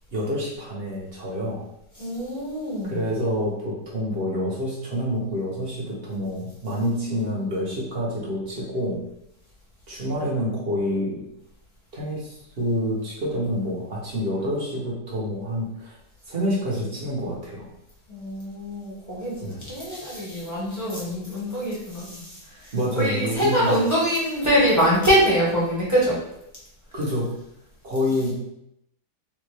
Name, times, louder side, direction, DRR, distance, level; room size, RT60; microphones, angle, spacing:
voice 1, 0.1-1.7 2.8-9.0 9.9-11.2 11.9-16.0 16.3-17.7 19.4-19.6 22.7-23.8 26.9-27.3 27.8-28.3, equal, 50° right, -4 dB, 0.7 m, -27 dB
voice 2, 1.9-3.0 18.1-26.2, equal, 15° right, -7 dB, 0.6 m, -24 dB
3.4 x 2.1 x 3.2 m, 0.80 s
omnidirectional pair, 1.7 m